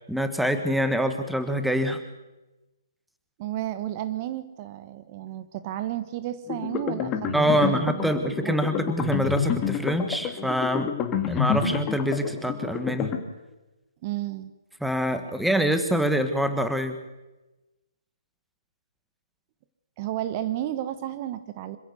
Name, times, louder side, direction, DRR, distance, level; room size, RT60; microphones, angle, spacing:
voice 1, 0.1-2.0 7.3-10.9 11.3-13.1 14.8-17.0, equal, ahead, 8 dB, 1.5 m, -25 dB
voice 2, 3.4-8.1 8.4-8.7 14.0-14.5 20.0-21.8, right 13 dB, 30° right, 12 dB, 1.2 m, -32 dB
sound 1, 6.5-13.2, left 7 dB, 20° left, 2.3 m, -29 dB
26.5 x 16.0 x 6.9 m, 1.1 s
figure-of-eight pair, 135°, 2 cm